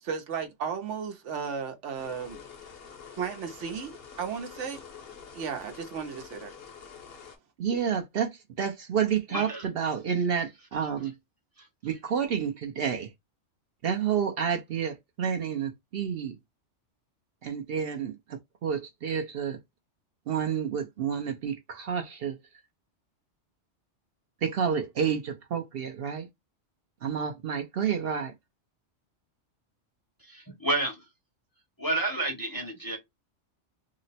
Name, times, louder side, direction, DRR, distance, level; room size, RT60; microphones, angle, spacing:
voice 1, 0.0-2.4 3.1-4.8 5.3-6.5, right 6 dB, 75° right, 1.1 m, -35 dB
sound 1, 2.0-7.4, left 6 dB, 60° left, 0.9 m, -47 dB
voice 2, 7.6-11.1 11.8-13.1 13.8-16.4 17.4-19.6 20.3-22.4 24.4-26.3 27.0-28.3, right 7 dB, 60° right, 0.7 m, -30 dB
voice 3, 9.3-9.6 11.6-11.7 30.2-31.0 31.8-33.0, right 2 dB, 20° left, 0.7 m, -30 dB
2.9 x 2.0 x 4.0 m
omnidirectional pair, 1.2 m